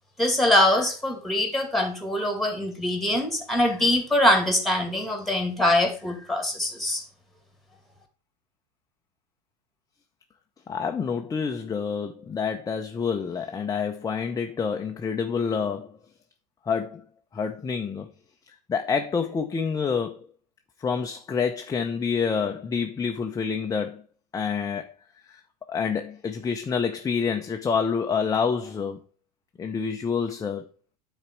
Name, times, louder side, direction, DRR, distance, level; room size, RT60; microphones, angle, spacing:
voice 1, 0.2-7.0, left 1 dB, ahead, 2.3 m, -23 dB
voice 2, 10.7-16.0 16.7-17.0 17.3-18.1 18.5-20.3 20.8-24.0 24.3-24.9 25.3-29.0 29.6-30.6, left 6 dB, 15° left, 0.7 m, -28 dB
9.6 x 4.2 x 4.6 m
hypercardioid pair, 95°, 21 cm